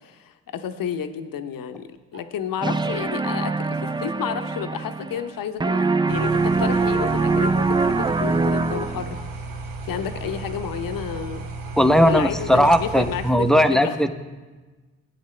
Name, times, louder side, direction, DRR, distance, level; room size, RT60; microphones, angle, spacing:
voice 1, 0.0-9.2 9.8-11.4 12.0-14.0, left 8 dB, 70° left, 9 dB, 0.8 m, -31 dB
Tick-tock, 2.1-2.2 3.1-3.4 4.1-4.4 5.1-5.2 5.5-5.6 6.1-6.3 7.1-7.2 8.1-8.2 9.1-9.2 10.1-10.2 11.1-11.2, right 4 dB, 30° right, 2.7 m, -46 dB
sound 1, 2.6-5.4 5.6-9.2, right 3 dB, 15° right, 0.3 m, -23 dB
sound 2, 6.1-13.3, right 3 dB, 70° right, 1.2 m, -34 dB
voice 2, 11.8-14.1, equal, ahead, 9 dB, 0.8 m, -18 dB
15.5 x 8.8 x 3.3 m, 1.3 s
supercardioid pair, 45°, 35 cm